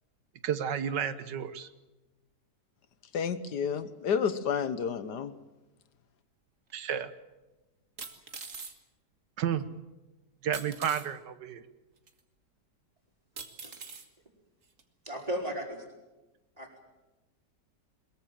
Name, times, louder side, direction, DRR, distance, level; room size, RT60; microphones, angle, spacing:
voice 1, 0.4-1.7 6.7-7.1 9.4-9.6 10.4-11.6, right 8 dB, 80° right, 12 dB, 1.7 m, -31 dB
voice 2, 3.1-5.3, left 7 dB, 75° left, 13 dB, 1.6 m, -30 dB
sound 1, 6.7-6.8 8.0-8.8 10.5-11.1 12.1-12.2 13.4-14.1 14.8-14.9, right 4 dB, 50° right, 2.2 m, -43 dB
voice 3, 15.0-15.8 16.6-16.8, equal, 20° right, 2 dB, 4.7 m, -35 dB
22.5 x 22.0 x 7.6 m, 1.1 s
omnidirectional pair, 1.9 m